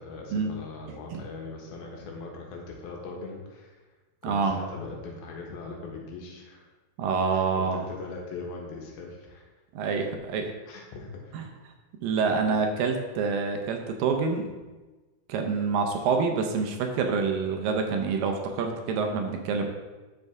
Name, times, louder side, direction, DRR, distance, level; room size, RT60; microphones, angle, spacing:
voice 1, 0.0-3.8 4.2-6.7 7.3-9.5 10.7-11.3, left 3 dB, 80° left, 0 dB, 3.2 m, -40 dB
voice 2, 4.2-4.6 7.0-7.8 9.7-10.5 11.3-11.4 12.0-14.5 15.3-19.7, right 5 dB, 75° right, 4 dB, 2.3 m, -27 dB
12.0 x 5.3 x 3.6 m, 1.2 s
omnidirectional pair, 4.3 m